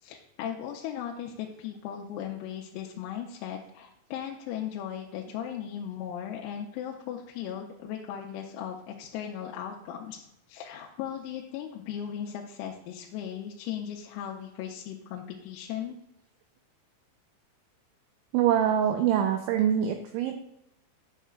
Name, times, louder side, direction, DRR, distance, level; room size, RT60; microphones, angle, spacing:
voice 1, 0.0-16.0, left 9 dB, 85° left, 0 dB, 3.3 m, -37 dB
voice 2, 18.3-20.3, right 9 dB, 90° right, 5 dB, 2.6 m, -24 dB
10.0 x 6.5 x 2.3 m, 0.83 s
omnidirectional pair, 6.0 m